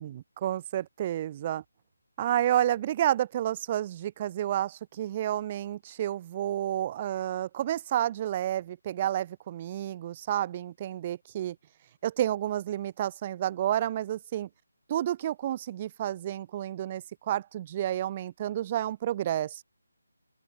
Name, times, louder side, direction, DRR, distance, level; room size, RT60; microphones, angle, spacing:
voice 1, 0.0-1.6 2.2-11.6 12.0-14.5 14.9-19.6, right 12 dB, 25° right, 4.9 m, -30 dB
figure-of-eight pair, 155°, 0 cm